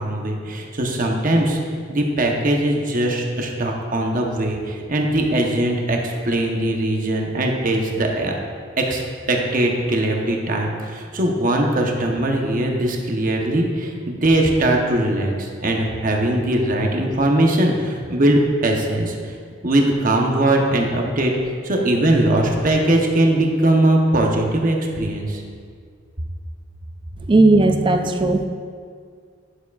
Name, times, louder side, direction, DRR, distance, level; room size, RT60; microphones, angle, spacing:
voice 1, 0.0-1.6 1.9-8.3 8.8-19.3 19.6-21.3 21.6-25.4, right 1 dB, 45° right, 1 dB, 0.9 m, -20 dB
voice 2, 27.3-28.5, right 2 dB, 25° right, 6 dB, 0.4 m, -15 dB
11.0 x 7.0 x 2.4 m, 2.1 s
head